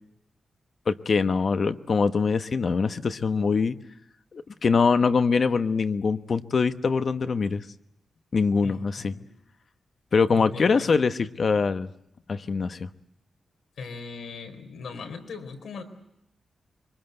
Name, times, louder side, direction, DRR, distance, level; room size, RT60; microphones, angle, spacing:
voice 1, 0.9-3.8 4.3-7.6 8.3-9.1 10.1-11.9 12.3-12.9, left 5 dB, 50° left, 10 dB, 1.2 m, -23 dB
voice 2, 8.6-9.2 10.3-10.9 13.8-15.8, left 4 dB, 80° left, 6 dB, 4.2 m, -39 dB
25.5 x 24.0 x 8.0 m, 0.80 s
wide cardioid pair, 125°, 0 cm